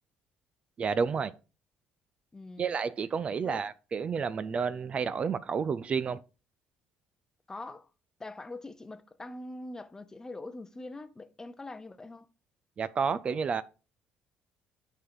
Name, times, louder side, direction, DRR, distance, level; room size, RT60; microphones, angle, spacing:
voice 1, 0.8-1.4 2.6-6.2 12.8-13.6, right 6 dB, 40° right, 0.4 m, -30 dB
voice 2, 2.3-2.7 3.4-3.6 7.5-7.9 8.2-12.3, left 2 dB, 20° left, 0.7 m, -43 dB
9.4 x 4.6 x 3.9 m
cardioid pair, 105°, 3 cm